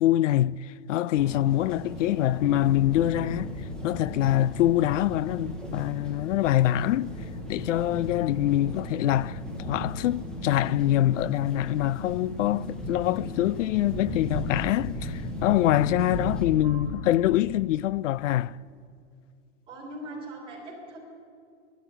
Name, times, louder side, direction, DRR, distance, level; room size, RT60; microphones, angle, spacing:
voice 1, 0.0-3.5 3.8-7.1 7.5-18.6, left 13 dB, 85° left, 0.5 m, -25 dB
sound 1, 1.2-16.5, left 1 dB, ahead, 0.7 m, -37 dB
sound 2, 2.6-17.7, left 1 dB, 40° left, 1.5 m, -41 dB
voice 2, 19.7-21.0, right 1 dB, 15° right, 3.4 m, -41 dB
12.5 x 10.0 x 8.9 m
supercardioid pair, 170°, 36 cm